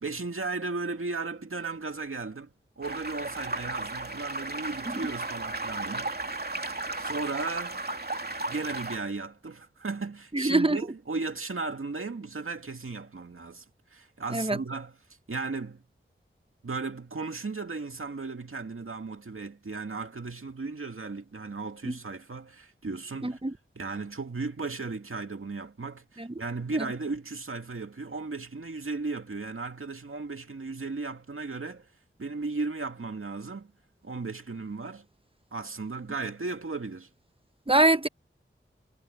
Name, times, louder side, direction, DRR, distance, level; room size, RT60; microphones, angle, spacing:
voice 1, 0.0-6.1 7.0-7.8 8.5-13.6 13.9-15.0 15.3-15.8 16.6-23.4 23.8-31.9 32.2-33.7 34.0-35.1 35.5-37.1, right 3 dB, 80° right, 2.3 m, -35 dB
sound 1, 2.8-9.0, right 2 dB, 50° right, 2.8 m, -35 dB
voice 2, 10.3-10.8 14.3-14.6 21.8-21.9 23.2-23.5 26.2-26.3 26.7-26.8 37.7-38.1, right 2 dB, 25° right, 1.1 m, -24 dB
wide cardioid pair, 45°, 21 cm